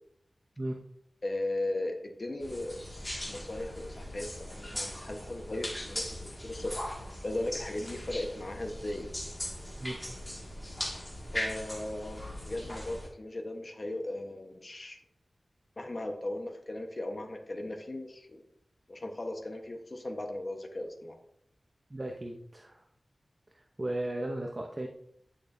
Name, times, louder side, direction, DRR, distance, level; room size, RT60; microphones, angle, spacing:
voice 1, 1.2-2.8 3.3-6.7 7.2-9.1 11.3-15.0 15.8-18.4 18.9-21.2, left 1 dB, 45° left, 3 dB, 1.3 m, -37 dB
sound 1, 2.4-13.1, left 1 dB, 15° left, 2.2 m, -39 dB
voice 2, 21.9-22.8 23.8-24.9, right 1 dB, 30° right, 1 dB, 0.9 m, -35 dB
10.5 x 6.5 x 2.7 m, 0.73 s
wide cardioid pair, 85°, 0 cm